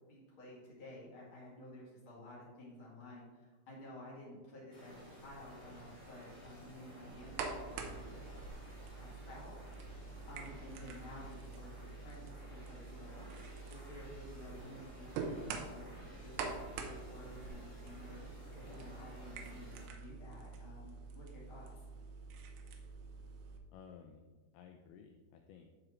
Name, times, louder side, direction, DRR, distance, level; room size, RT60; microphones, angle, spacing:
voice 1, 0.0-8.3 9.0-9.6 10.3-21.7, left 1 dB, 40° left, -6 dB, 2.1 m, -53 dB
sound 1, 4.7-19.9, equal, 20° left, 1.0 m, -54 dB
sound 2, 7.1-23.6, right 4 dB, 80° right, 2.6 m, -46 dB
voice 2, 23.7-25.7, left 6 dB, 85° left, 5 dB, 2.2 m, -56 dB
11.0 x 4.8 x 3.1 m, 1.3 s
omnidirectional pair, 5.0 m